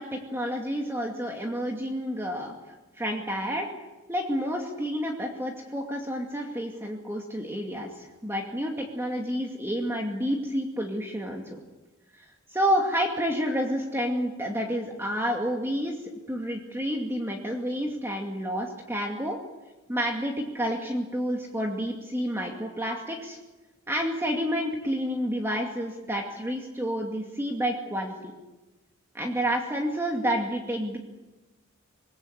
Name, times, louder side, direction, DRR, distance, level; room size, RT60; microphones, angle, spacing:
voice 1, 0.0-2.6 3.0-3.7 4.1-11.6 12.1-16.0 16.3-19.4 19.9-23.4 23.9-28.3 29.1-31.0, equal, 10° right, 1 dB, 2.4 m, -29 dB
26.0 x 21.0 x 8.2 m, 1.1 s
head